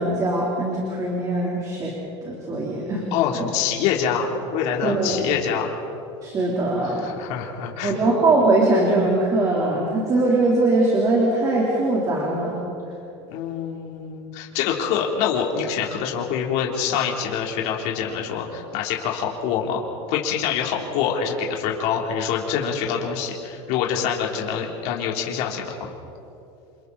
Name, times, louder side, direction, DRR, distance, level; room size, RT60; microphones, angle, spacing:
voice 1, 0.0-1.9 2.2-3.0 4.8-5.2 6.2-7.1 7.8-12.6, right 2 dB, 25° right, -3 dB, 3.9 m, -21 dB
voice 2, 3.1-5.7 6.8-8.0 13.3-19.8 20.1-25.9, left 7 dB, 55° left, -1 dB, 3.6 m, -25 dB
28.5 x 28.5 x 4.3 m, 2.8 s
supercardioid pair, 155°, 14 cm